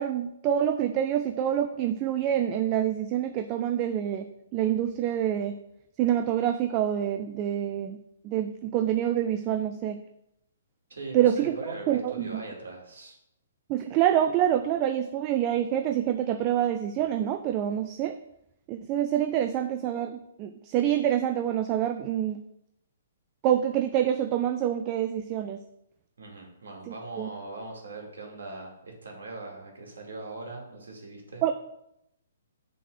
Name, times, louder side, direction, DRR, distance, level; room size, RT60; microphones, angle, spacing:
voice 1, 0.0-4.3 4.5-5.6 6.0-8.0 8.2-10.0 11.1-11.6 11.9-12.4 13.7-18.2 18.7-22.4 23.4-25.6 26.9-27.3 31.4-31.5, right 10 dB, 30° right, 8 dB, 0.4 m, -26 dB
voice 2, 10.9-13.2 26.2-31.5, right 2 dB, 70° right, 0 dB, 2.4 m, -40 dB
6.9 x 3.7 x 6.1 m, 0.81 s
figure-of-eight pair, 130°, 0 cm